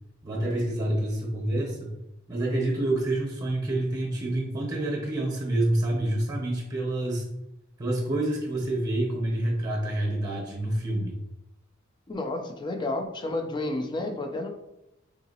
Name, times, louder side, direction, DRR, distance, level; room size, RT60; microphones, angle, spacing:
voice 1, 0.2-1.9 2.3-7.3 7.8-11.2, right 1 dB, 20° right, -1 dB, 0.8 m, -27 dB
voice 2, 12.1-14.5, left 2 dB, 25° left, 5 dB, 0.4 m, -31 dB
3.8 x 2.7 x 2.8 m, 0.89 s
head